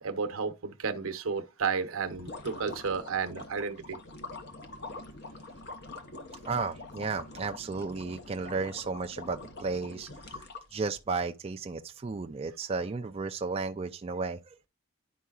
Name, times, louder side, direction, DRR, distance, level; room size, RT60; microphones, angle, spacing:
voice 1, 0.0-4.0, right 5 dB, 75° right, 0.8 m, -32 dB
sound 1, 2.0-11.0, left 2 dB, 50° left, 0.9 m, -44 dB
voice 2, 6.4-10.4 10.7-14.6, right 4 dB, 30° right, 0.4 m, -34 dB
11.0 x 4.6 x 2.4 m
head